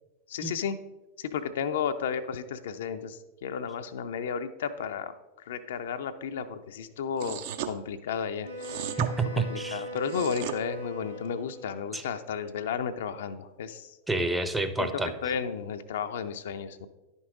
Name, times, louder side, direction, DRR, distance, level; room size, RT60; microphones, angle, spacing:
voice 1, 0.3-0.8 1.2-8.8 9.3-14.0 14.8-16.9, left 7 dB, 60° left, 9 dB, 0.4 m, -33 dB
sound 1, 7.2-7.7 8.6-9.1 10.0-10.6, right 11 dB, 50° right, 0.5 m, -35 dB
Wind instrument woodwind instrument, 8.4-12.0, equal, 90° right, 1.8 m, -40 dB
voice 2, 9.0-9.8 11.9-12.0 14.1-15.1, right 3 dB, 5° right, 8 dB, 0.6 m, -29 dB
10.5 x 5.4 x 3.6 m, 1.1 s
figure-of-eight pair, 90°, 0 cm